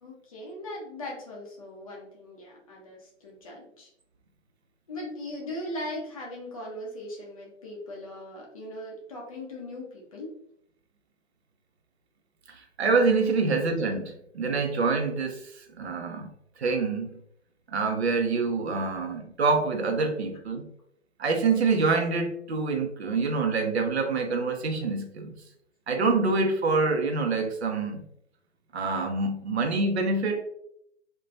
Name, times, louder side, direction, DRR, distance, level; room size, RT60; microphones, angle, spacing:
voice 1, 0.0-3.9 4.9-10.3 18.9-19.1, left 1 dB, 30° left, -2 dB, 0.5 m, -39 dB
voice 2, 12.5-16.3 16.6-17.2 17.7-20.7 21.2-25.3 25.9-28.0 28.7-30.4, right 4 dB, 60° right, 4 dB, 0.6 m, -26 dB
2.2 x 2.2 x 2.6 m, 0.72 s
figure-of-eight pair, 130°, 37 cm